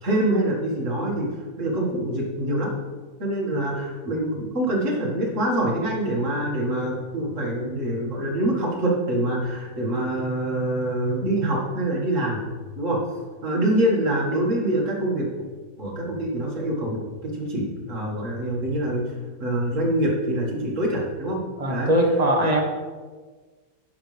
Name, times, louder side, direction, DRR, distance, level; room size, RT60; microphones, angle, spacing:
voice 1, 0.0-2.7 3.2-12.4 12.8-13.0 13.4-15.3 15.8-19.1 19.4-21.4 21.7-21.9 22.4-22.6, right 1 dB, 55° right, -3 dB, 2.1 m, -25 dB
voice 2, 21.6-22.6, right 1 dB, 30° right, 1 dB, 1.0 m, -20 dB
9.8 x 6.7 x 3.3 m, 1.4 s
omnidirectional pair, 1.6 m